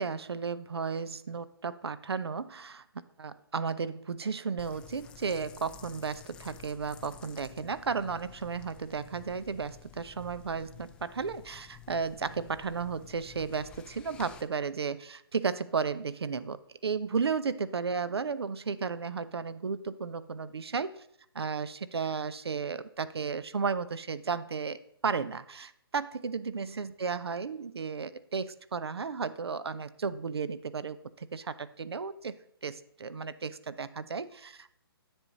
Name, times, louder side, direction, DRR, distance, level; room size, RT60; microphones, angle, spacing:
voice 1, 0.0-2.8 3.2-20.9 21.3-24.8 25.0-34.7, right 5 dB, 85° right, 15 dB, 0.6 m, -34 dB
sound 1, 4.6-14.4, left 8 dB, 5° left, 0.4 m, -51 dB
10.5 x 7.3 x 4.0 m, 0.71 s
hypercardioid pair, 150°, 13 cm